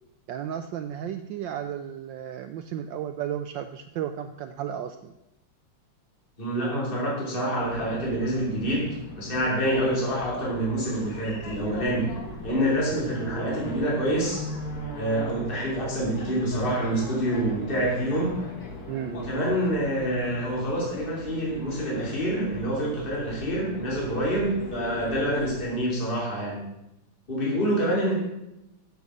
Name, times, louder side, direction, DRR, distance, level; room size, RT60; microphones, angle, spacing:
voice 1, 0.3-5.1 18.9-19.2, right 10 dB, 75° right, 9 dB, 1.1 m, -33 dB
voice 2, 6.4-12.1 12.4-14.6 14.9-18.4 19.1-26.6 27.3-28.1, right 1 dB, 25° left, -4 dB, 3.0 m, -27 dB
sound 1, 7.6-25.6, left 2 dB, 45° left, 1.9 m, -39 dB
8.1 x 8.0 x 6.4 m, 0.89 s
omnidirectional pair, 2.4 m